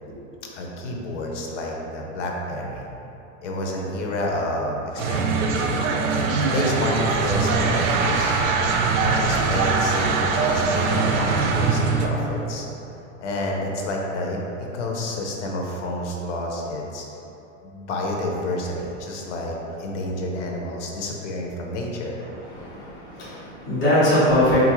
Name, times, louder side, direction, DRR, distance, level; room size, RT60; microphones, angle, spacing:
voice 1, 0.5-2.9 3.4-5.8 6.4-8.3 9.0-12.7 13.2-14.4 14.7-17.0 17.6-22.2, left 1 dB, 65° left, 0 dB, 0.6 m, -29 dB
sound 1, 5.0-12.1, right 4 dB, 90° right, 0.5 m, -22 dB
voice 2, 22.2-24.7, left 1 dB, 10° left, -12 dB, 0.4 m, -21 dB
3.8 x 2.4 x 2.9 m, 2.9 s
supercardioid pair, 165°, 39 cm